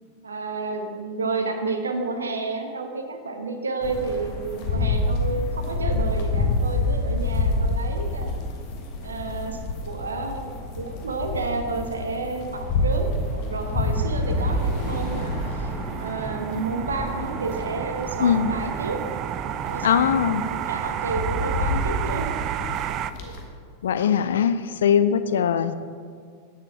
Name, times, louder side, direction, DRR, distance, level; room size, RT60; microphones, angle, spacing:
voice 1, 0.2-8.4 9.0-9.6 9.9-15.7 16.0-19.0 19.7-20.2 20.7-22.3 23.2-23.4, right 3 dB, 75° right, 5 dB, 1.0 m, -30 dB
sound 1, 3.8-23.4, left 2 dB, 45° left, 1.3 m, -28 dB
sound 2, 13.9-23.1, right 10 dB, 35° right, 0.3 m, -31 dB
voice 2, 19.8-20.4 23.8-25.7, left 8 dB, 65° left, 12 dB, 0.4 m, -21 dB
9.3 x 6.9 x 4.7 m, 2.1 s
figure-of-eight pair, 90°, 0 cm